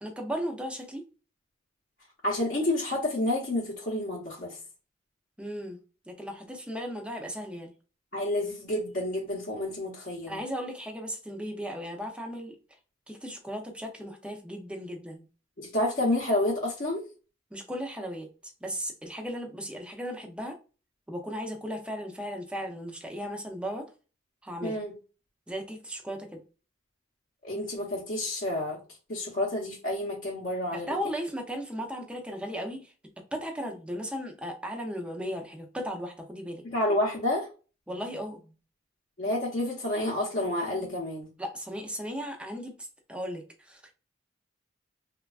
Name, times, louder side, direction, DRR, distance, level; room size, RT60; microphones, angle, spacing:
voice 1, 0.0-1.0 5.4-5.8 6.1-7.7 10.3-12.6 13.1-15.2 17.5-18.3 18.6-20.6 21.1-23.9 24.4-24.8 25.5-26.4 30.7-32.9 33.3-36.6 37.9-38.4 41.4-43.9, equal, 5° right, 3 dB, 0.5 m, -36 dB
voice 2, 2.2-4.6 8.1-10.4 15.6-17.0 24.6-24.9 27.4-28.8 29.1-30.9 36.6-37.5 39.2-41.3, left 1 dB, 45° left, -5 dB, 0.7 m, -29 dB
3.2 x 2.3 x 2.3 m, 0.34 s
head